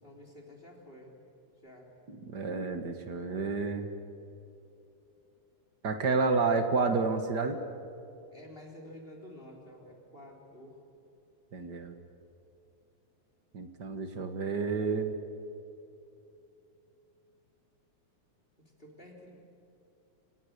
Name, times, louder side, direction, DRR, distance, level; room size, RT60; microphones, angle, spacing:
voice 1, 0.0-1.1 1.6-1.9 8.3-10.8 18.6-19.3, left 1 dB, 20° left, 0 dB, 3.8 m, -50 dB
voice 2, 2.1-3.9 5.8-7.6 11.5-11.9 13.5-15.1, right 4 dB, 45° right, 7 dB, 1.6 m, -30 dB
27.0 x 25.0 x 6.7 m, 2.7 s
omnidirectional pair, 3.4 m